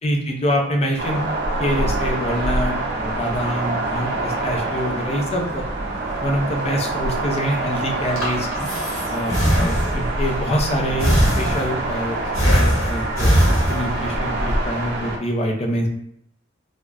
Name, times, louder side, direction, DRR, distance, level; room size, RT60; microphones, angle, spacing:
voice 1, 0.0-1.2 1.6-5.6 6.2-8.7 9.1-15.9, equal, 30° left, 2 dB, 0.4 m, -25 dB
sound 1, 1.0-15.2, right 2 dB, 55° right, 0.5 m, -25 dB
Breathing, 8.2-10.2 11.0-11.9 12.3-14.2, equal, 85° left, 1.0 m, -20 dB
3.2 x 2.0 x 2.3 m, 0.73 s
head